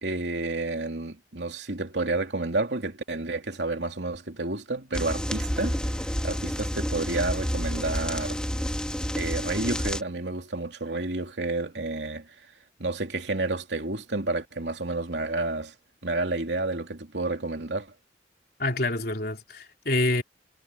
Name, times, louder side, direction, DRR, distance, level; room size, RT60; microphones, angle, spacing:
voice 1, 0.0-8.4 9.1-12.3 12.8-15.7 16.0-17.9, right 2 dB, 75° right, 2.9 m, -30 dB
sound 1, 4.9-10.0, equal, 5° left, 1.3 m, -29 dB
voice 2, 18.6-20.2, left 2 dB, 60° left, 3.8 m, -27 dB
head